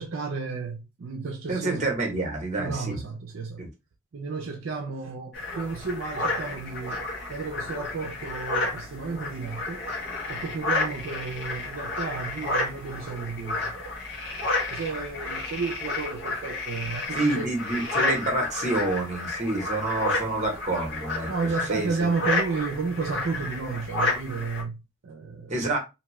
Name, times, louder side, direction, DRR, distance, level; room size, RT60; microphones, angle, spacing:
voice 1, 0.0-1.9 2.6-3.7 4.1-9.8 10.3-13.7 14.3-17.5 21.3-25.6, right 4 dB, 65° right, 0.5 m, -32 dB
voice 2, 1.5-3.0 3.6-3.7 17.1-21.3 21.7-22.1 25.5-25.8, right 2 dB, 35° right, 0.9 m, -28 dB
sound 1, 5.3-24.6, left 2 dB, 55° left, 1.0 m, -31 dB
2.6 x 2.3 x 3.0 m
head